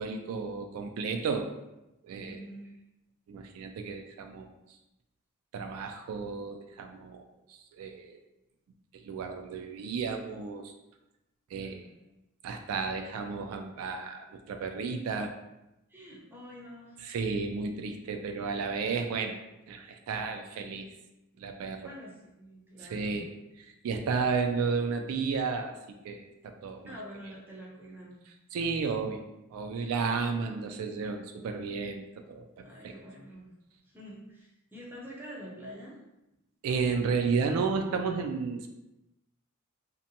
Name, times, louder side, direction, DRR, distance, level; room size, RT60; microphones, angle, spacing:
voice 1, 0.0-1.5 2.0-2.4 3.3-4.5 5.5-7.2 7.7-8.2 8.9-10.7 11.5-11.8 12.4-15.3 17.0-19.4 19.7-20.9 21.4-21.9 22.9-23.3 23.8-25.7 26.0-26.8 28.5-29.3 29.5-32.4 32.8-32.9 36.6-38.7, right 5 dB, 80° right, 9 dB, 0.3 m, -32 dB
voice 2, 2.2-2.7 11.5-11.9 15.9-17.1 21.8-23.2 26.9-28.2 32.6-33.5 33.8-36.0, equal, 10° right, -4 dB, 0.5 m, -46 dB
2.7 x 2.1 x 2.7 m, 0.92 s
head